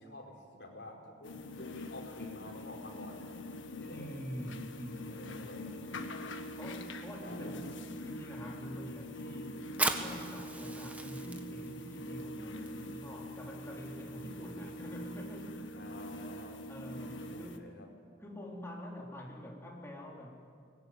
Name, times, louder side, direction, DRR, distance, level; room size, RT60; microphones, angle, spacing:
voice 1, 0.0-3.2 3.8-4.1 5.0-6.0 7.2-7.5 15.7-16.6 17.3-17.9, left 1 dB, 60° left, 0 dB, 5.0 m, -49 dB
sound 1, 1.2-17.6, left 1 dB, 80° left, 1.7 m, -44 dB
voice 2, 3.9-5.5 6.6-9.6 9.9-15.9 16.7-17.7 18.2-20.5, equal, 15° left, -2 dB, 3.7 m, -46 dB
Fire, 9.7-16.9, right 2 dB, 10° right, 1.6 m, -41 dB
24.0 x 19.5 x 9.6 m, 2.3 s
head